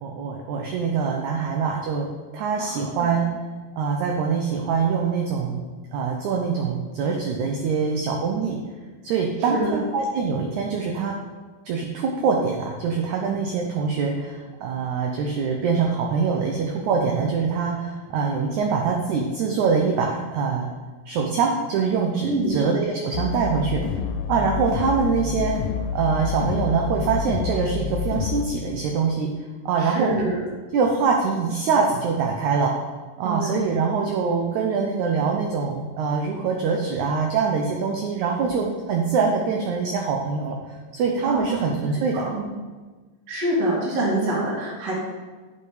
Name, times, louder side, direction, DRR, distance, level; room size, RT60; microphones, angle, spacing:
voice 1, 0.0-2.1 2.3-3.3 3.8-5.6 5.9-8.6 9.0-11.1 11.7-20.7 21.1-23.8 24.3-25.6 25.9-29.3 29.7-30.2 30.7-32.8 33.2-42.2, right 5 dB, 75° right, 1 dB, 1.8 m, -24 dB
voice 2, 2.6-3.1 9.5-9.8 22.2-22.6 29.8-30.4 33.2-33.6 38.4-38.5 41.2-41.7 42.1-42.4 43.3-44.9, right 1 dB, 50° right, -7 dB, 2.5 m, -26 dB
sound 1, 23.1-28.5, left 7 dB, 90° left, 2.4 m, -28 dB
8.8 x 5.4 x 4.9 m, 1.4 s
omnidirectional pair, 4.1 m